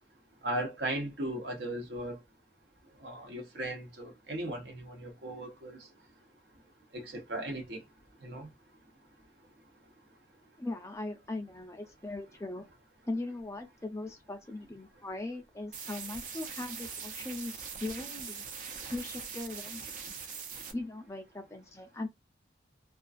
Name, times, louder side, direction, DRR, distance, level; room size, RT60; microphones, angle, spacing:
voice 1, 0.4-2.2 3.0-5.8 6.9-7.8 8.2-8.5, right 1 dB, 65° right, 0.8 m, -37 dB
voice 2, 10.6-12.7 13.1-18.5 18.9-20.4 20.7-22.1, left 2 dB, 15° left, 0.4 m, -39 dB
sound 1, 15.7-20.7, right 6 dB, 45° right, 0.4 m, -42 dB
2.3 x 2.2 x 2.4 m
head